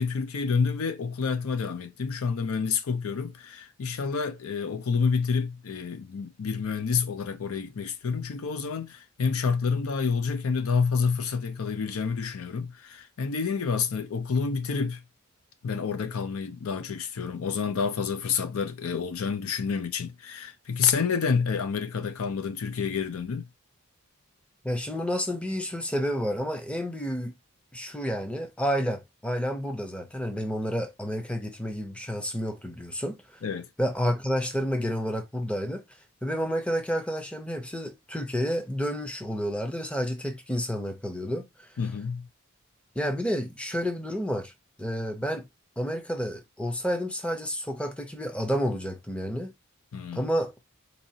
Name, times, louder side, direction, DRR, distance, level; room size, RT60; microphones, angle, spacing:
voice 1, 0.0-15.0 15.6-23.5 33.4-33.7 41.8-42.3 49.9-50.3, left 5 dB, 75° left, 0.5 m, -28 dB
voice 2, 24.6-27.4 27.7-33.2 33.8-35.8 36.2-41.7 43.0-44.5 44.8-45.5 45.8-49.5 50.1-50.5, equal, 5° left, 0.6 m, -30 dB
3.9 x 2.8 x 2.7 m
head